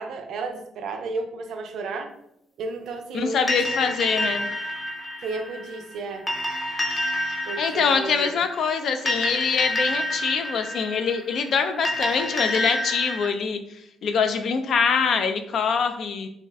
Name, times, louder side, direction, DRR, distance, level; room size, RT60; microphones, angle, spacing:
voice 1, 0.0-2.1 2.6-3.8 4.2-4.4 5.2-6.3 7.4-8.4, right 3 dB, 75° right, 6 dB, 0.4 m, -33 dB
voice 2, 3.1-4.4 7.6-16.3, left 6 dB, 65° left, 7 dB, 0.3 m, -24 dB
sound 1, 3.5-13.3, left 1 dB, 15° left, 0.7 m, -29 dB
2.6 x 2.1 x 3.3 m, 0.76 s
cardioid pair, 90°, 0 cm